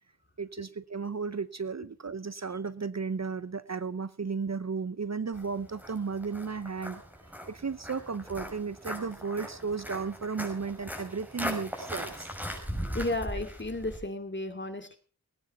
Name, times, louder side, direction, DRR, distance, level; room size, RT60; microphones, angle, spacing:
voice 1, 0.4-7.0 7.5-12.3, right 5 dB, 45° right, 16 dB, 0.7 m, -34 dB
Walk footsteps, 5.3-14.0, equal, 5° right, 5.9 m, -39 dB
voice 2, 12.9-15.0, left 2 dB, 30° left, 8 dB, 2.6 m, -33 dB
19.0 x 9.9 x 5.9 m, 0.40 s
wide cardioid pair, 75°, 38 cm